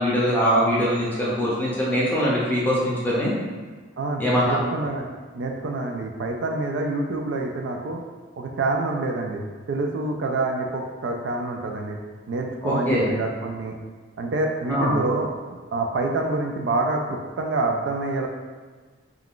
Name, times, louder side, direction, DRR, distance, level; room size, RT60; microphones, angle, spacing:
voice 1, 0.0-3.3 4.2-4.6 12.6-13.1 14.7-15.0, equal, 10° left, -6 dB, 0.5 m, -22 dB
voice 2, 4.0-5.1 5.3-8.0 8.4-12.0 12.3-13.8 14.2-18.3, right 2 dB, 65° right, 2 dB, 0.3 m, -27 dB
2.3 x 2.3 x 3.5 m, 1.4 s
head